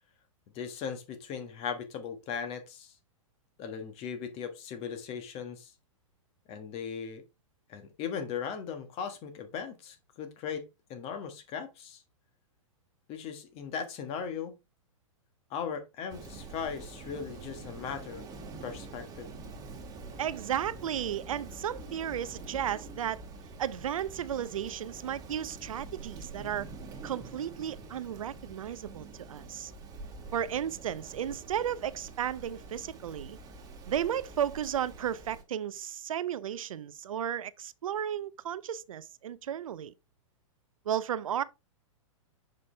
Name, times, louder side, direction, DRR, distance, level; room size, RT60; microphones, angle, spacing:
voice 1, 0.5-2.9 3.6-5.7 6.5-7.2 7.7-10.6 10.9-12.0 13.1-14.5 15.5-18.2 18.6-19.3, left 7 dB, 35° left, 1.5 m, -38 dB
Rain, 16.1-35.4, right 3 dB, 20° right, 1.6 m, -46 dB
voice 2, 20.2-23.2 23.6-26.7 27.0-29.7 30.3-33.4 33.9-39.9 40.9-41.4, right 9 dB, 80° right, 0.6 m, -34 dB
6.8 x 5.3 x 3.3 m
hypercardioid pair, 125°, 17 cm